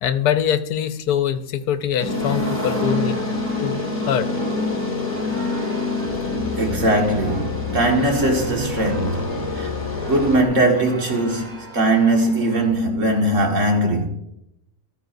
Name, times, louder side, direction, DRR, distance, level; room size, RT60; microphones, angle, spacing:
voice 1, 0.0-3.2 3.6-4.3, left 9 dB, 80° left, 1.2 m, -23 dB
sound 1, 2.0-10.4, left 3 dB, 20° left, 1.8 m, -26 dB
sound 2, 2.1-12.7, right 2 dB, ahead, 4.3 m, -41 dB
voice 2, 6.6-9.7 10.0-14.1, right 1 dB, 50° right, 2.0 m, -20 dB
13.5 x 13.5 x 2.6 m
omnidirectional pair, 1.7 m